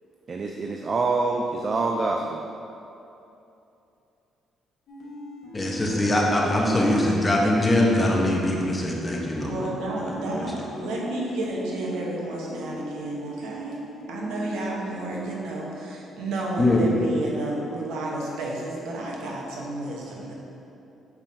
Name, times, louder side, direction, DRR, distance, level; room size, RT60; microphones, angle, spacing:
voice 1, 0.3-2.4, right 3 dB, 40° right, 2 dB, 0.4 m, -26 dB
sound 1, 4.9-15.2, equal, 70° left, 1.4 m, -39 dB
voice 2, 5.5-9.7 10.1-10.5 16.6-16.8, left 1 dB, 20° left, -2 dB, 1.0 m, -22 dB
voice 3, 9.5-13.8 14.1-20.3, right 2 dB, 90° right, -2 dB, 1.0 m, -31 dB
7.0 x 5.4 x 2.7 m, 2.9 s
cardioid pair, 90°, 0 cm